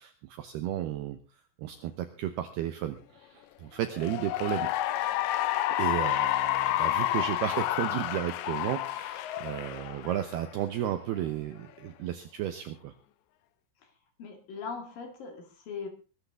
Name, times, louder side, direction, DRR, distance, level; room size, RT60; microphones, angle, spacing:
voice 1, 0.0-4.7 5.8-12.9, right 12 dB, 75° right, 9 dB, 2.4 m, -33 dB
Cheering / Applause, 3.9-10.6, left 14 dB, 75° left, 2.9 m, -30 dB
voice 2, 14.2-15.9, left 5 dB, 55° left, 5 dB, 3.3 m, -40 dB
22.0 x 12.5 x 3.6 m, 0.34 s
omnidirectional pair, 5.7 m